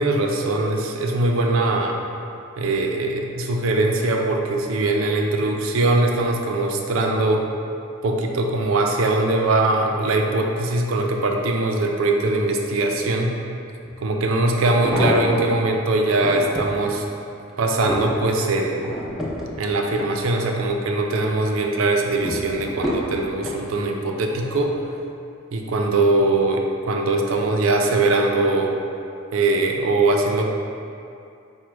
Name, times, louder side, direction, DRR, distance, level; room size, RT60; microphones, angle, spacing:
voice 1, 0.0-2.0 2.6-7.5 8.0-13.4 14.0-17.1 17.6-18.9 19.6-24.7 25.5-28.7 29.3-30.5, right 2 dB, 85° right, 2 dB, 0.5 m, -21 dB
sound 1, 13.8-13.9 14.6-15.6 16.1-16.8 17.3-20.7 21.1-21.6 22.2-23.6 24.4-24.7 25.0-25.1, left 1 dB, ahead, 0.5 m, -29 dB
4.8 x 2.1 x 4.5 m, 2.5 s
head